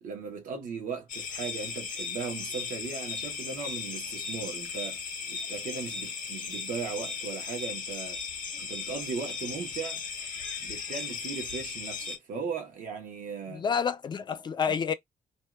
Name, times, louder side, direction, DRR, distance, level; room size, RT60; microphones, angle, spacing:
voice 1, 0.0-5.0 5.3-8.2 8.6-10.0 10.6-13.6 14.7-14.8, right 5 dB, 75° right, 1.0 m, -37 dB
sound 1, 1.1-12.2, left 5 dB, 70° left, 0.7 m, -37 dB
voice 2, 13.5-14.9, left 6 dB, 35° left, 0.4 m, -29 dB
2.6 x 2.2 x 2.3 m
cardioid pair, 140°, 14 cm